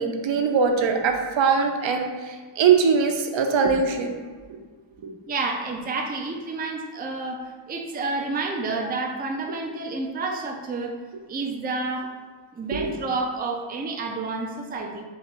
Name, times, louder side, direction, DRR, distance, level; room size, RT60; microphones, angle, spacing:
voice 1, 0.0-4.1 5.0-5.1 12.7-12.9, right 5 dB, 75° right, 4 dB, 0.6 m, -22 dB
voice 2, 5.3-10.9 11.3-12.1 12.5-15.0, right 3 dB, 20° right, 2 dB, 0.4 m, -29 dB
3.8 x 2.3 x 4.4 m, 1.4 s
wide cardioid pair, 95°, 47 cm